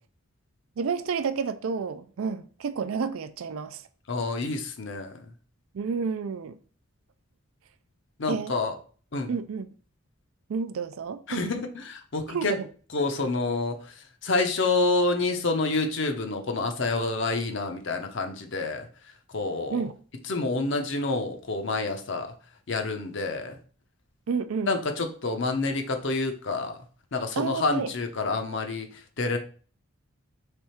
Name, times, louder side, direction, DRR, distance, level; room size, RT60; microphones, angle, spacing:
voice 1, 0.8-3.8 5.7-6.6 8.3-8.6 9.3-9.7 10.5-11.5 12.3-12.7 19.7-19.9 24.3-24.7 27.4-27.9, right 5 dB, 75° right, 0.4 m, -30 dB
voice 2, 4.1-5.2 8.2-8.7 9.1-9.3 11.3-12.5 12.9-18.9 19.3-19.9 20.3-22.3 22.7-23.6 24.6-26.8 27.1-29.4, left 3 dB, 55° left, 0.7 m, -28 dB
3.5 x 3.4 x 4.3 m
head